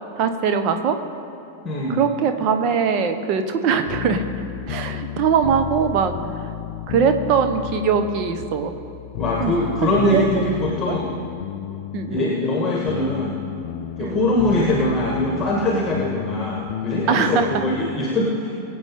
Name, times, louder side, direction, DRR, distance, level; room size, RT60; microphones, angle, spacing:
voice 1, 0.2-1.0 1.9-4.2 4.7-6.1 6.9-8.7 9.4-9.5 9.8-10.3 10.9-11.0 11.9-12.3 14.0-14.2 17.1-17.6, right 6 dB, 40° right, 7 dB, 1.2 m, -21 dB
voice 2, 1.6-2.0 9.2-11.1 12.1-13.4 14.0-18.5, left 1 dB, 20° left, -2 dB, 1.9 m, -22 dB
sound 1, 3.9-18.0, left 14 dB, 50° left, 0.4 m, -32 dB
22.5 x 8.1 x 3.8 m, 2.9 s
figure-of-eight pair, 90°, 0 cm